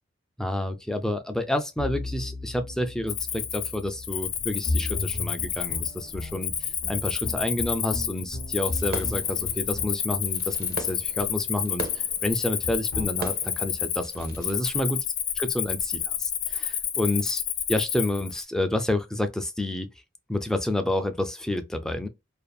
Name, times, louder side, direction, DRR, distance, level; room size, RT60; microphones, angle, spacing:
voice 1, 0.4-15.0 15.4-17.4 17.7-19.9 20.3-22.1, left 1 dB, 5° left, 0.3 m, -29 dB
sound 1, 1.8-11.2 12.6-13.1, left 2 dB, 85° left, 0.7 m, -36 dB
Cricket, 3.1-18.4, left 9 dB, 50° left, 0.5 m, -30 dB
Fireworks, 8.6-14.6, right 3 dB, 55° right, 0.6 m, -40 dB
2.6 x 2.3 x 2.2 m
head